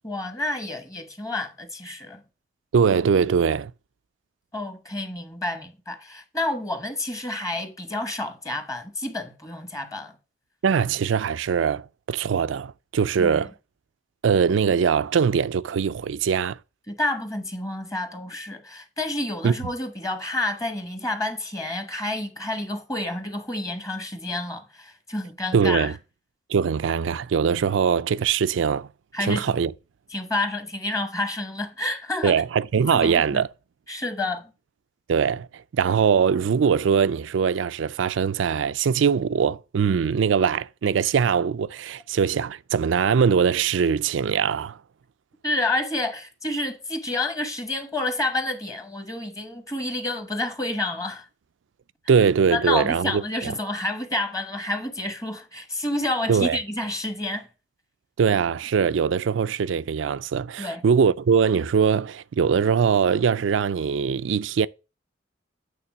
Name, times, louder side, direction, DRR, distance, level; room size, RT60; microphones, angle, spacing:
voice 1, 0.0-2.2 4.5-10.2 13.2-13.4 16.9-25.9 29.1-29.6 30.1-32.4 32.8-33.4 33.9-34.5 45.4-51.3 52.5-57.5 60.6-60.8, left 2 dB, 20° left, 1.1 m, -29 dB
voice 2, 2.7-3.7 10.6-13.5 14.2-16.6 19.4-19.6 25.5-25.9 26.5-28.9 29.2-29.7 32.2-33.5 35.1-44.8 52.1-53.5 56.3-56.6 58.2-64.7, right 6 dB, 75° right, 0.4 m, -22 dB
8.6 x 3.7 x 6.0 m
head